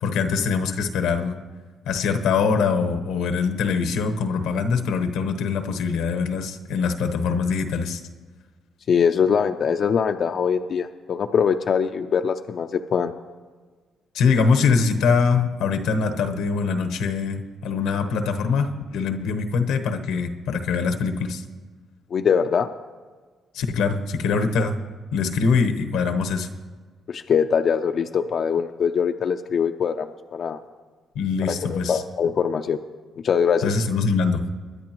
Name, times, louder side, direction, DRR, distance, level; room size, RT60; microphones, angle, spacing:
voice 1, 0.0-1.4 1.9-8.0 14.1-21.4 23.5-24.8 25.1-26.5 31.1-32.0 33.6-34.5, left 5 dB, 90° left, 7 dB, 1.0 m, -23 dB
voice 2, 8.9-13.1 22.1-22.7 27.1-30.6 31.4-32.8 33.2-33.7, left 7 dB, 55° left, 5 dB, 0.5 m, -22 dB
22.0 x 10.0 x 3.0 m, 1.4 s
cardioid pair, 90°, 0 cm